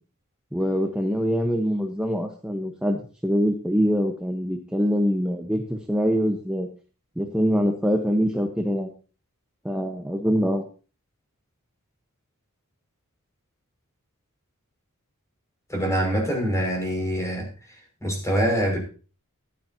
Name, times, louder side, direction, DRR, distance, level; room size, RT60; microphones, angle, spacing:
voice 1, 0.5-6.7 7.2-8.9 9.6-10.6, equal, 5° right, 3 dB, 1.2 m, -24 dB
voice 2, 15.7-17.5 18.0-18.8, equal, 15° left, 1 dB, 5.9 m, -24 dB
15.0 x 12.0 x 2.9 m, 0.36 s
head